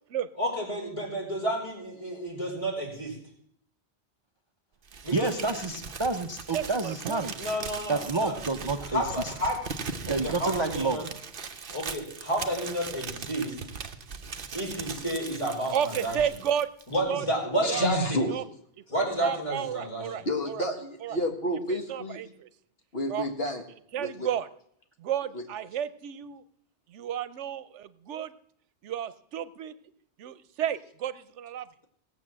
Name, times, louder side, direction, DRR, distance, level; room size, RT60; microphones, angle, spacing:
voice 1, 0.4-3.1 5.0-5.4 7.4-8.4 8.8-9.6 10.1-11.0 11.7-13.5 14.5-16.2 16.9-18.2 18.9-20.1, right 1 dB, 30° left, -2 dB, 4.7 m, -31 dB
Crumpling crinkling, 4.9-17.0, right 5 dB, 50° right, 1.1 m, -39 dB
voice 2, 5.1-7.4 7.9-9.3 10.1-11.1, right 3 dB, 30° right, 6 dB, 0.6 m, -29 dB
voice 3, 6.5-7.3 15.7-16.7 17.1-17.3 17.6-17.9 18.3-18.4 19.2-20.6 21.0-21.2 21.7-22.5 23.1-23.3 23.9-24.5 25.0-26.4 26.9-28.3 28.8-29.7 30.2-31.7, right 9 dB, 90° right, 15 dB, 1.0 m, -32 dB
voice 4, 17.6-18.3 20.3-22.2 22.9-23.6 24.0-24.3 25.3-25.4, left 1 dB, 60° left, 4 dB, 1.9 m, -30 dB
17.5 x 7.3 x 7.4 m, 0.68 s
omnidirectional pair, 1.2 m